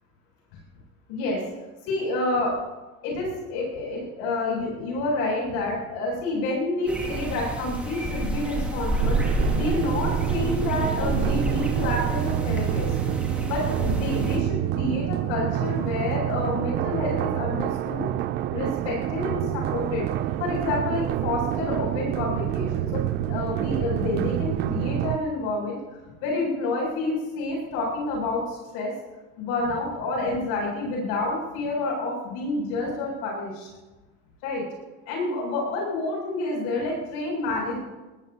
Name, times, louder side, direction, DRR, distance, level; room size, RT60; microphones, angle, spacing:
voice 1, 1.1-1.4 1.8-2.6 3.0-13.0 13.5-18.1 18.5-20.1 20.4-28.9 29.4-33.7 34.4-34.6 35.1-37.8, left 2 dB, 65° left, -3 dB, 7.4 m, -28 dB
sound 1, 6.9-14.4, right 1 dB, 5° right, 2.3 m, -29 dB
sound 2, 9.0-25.2, right 13 dB, 30° right, 0.4 m, -27 dB
23.0 x 20.0 x 2.9 m, 1.2 s
cardioid pair, 165°, 32 cm